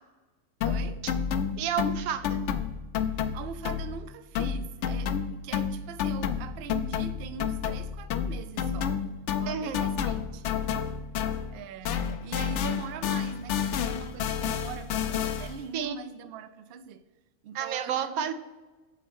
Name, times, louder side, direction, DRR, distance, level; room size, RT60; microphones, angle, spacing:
sound 1, 0.6-4.1 4.3-11.6 11.8-15.6, left 7 dB, 65° left, 0.8 m, -30 dB
voice 1, 0.6-1.1 3.2-9.0 9.4-10.7 11.5-17.0 17.4-18.3, right 7 dB, 65° right, 0.6 m, -42 dB
voice 2, 1.6-2.4 9.5-9.8 15.7-15.9 17.5-18.3, right 8 dB, 90° right, 1.1 m, -30 dB
7.7 x 4.2 x 5.4 m
omnidirectional pair, 1.5 m